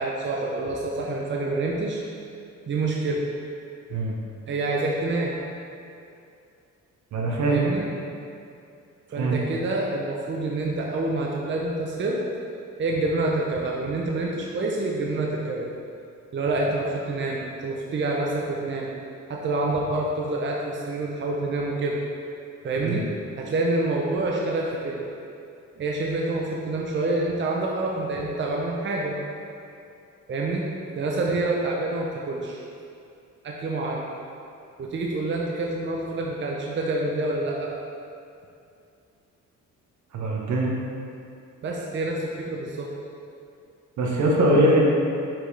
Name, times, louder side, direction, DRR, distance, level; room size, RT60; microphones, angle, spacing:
voice 1, 0.0-2.0 2.7-3.2 4.5-5.3 7.5-7.9 9.1-12.2 12.8-15.7 16.3-18.9 19.3-22.0 22.6-23.1 23.4-25.0 25.8-29.2 30.3-30.6 31.0-32.6 33.4-34.0 34.8-37.7 41.6-42.9, right 2 dB, 40° right, -2 dB, 0.7 m, -27 dB
voice 2, 7.1-7.6 9.2-9.4 22.8-23.0 40.1-40.7 44.0-44.8, right 1 dB, 70° right, -1 dB, 1.1 m, -22 dB
5.9 x 5.1 x 3.3 m, 2.5 s
cardioid pair, 90°, 30 cm